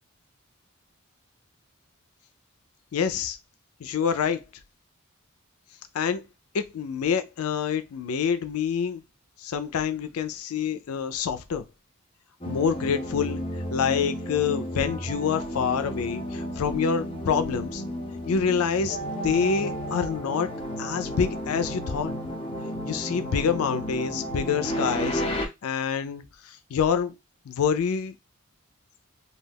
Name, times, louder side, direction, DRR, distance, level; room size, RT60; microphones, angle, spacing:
voice 1, 2.9-3.4 3.8-4.4 5.9-6.2 6.5-9.0 9.4-11.6 12.4-17.8 18.3-22.2 22.9-27.1 27.5-28.1, left 6 dB, 90° left, 0.4 m, -27 dB
sound 1, 12.4-25.5, equal, 25° left, 0.6 m, -32 dB
2.3 x 2.3 x 3.4 m
head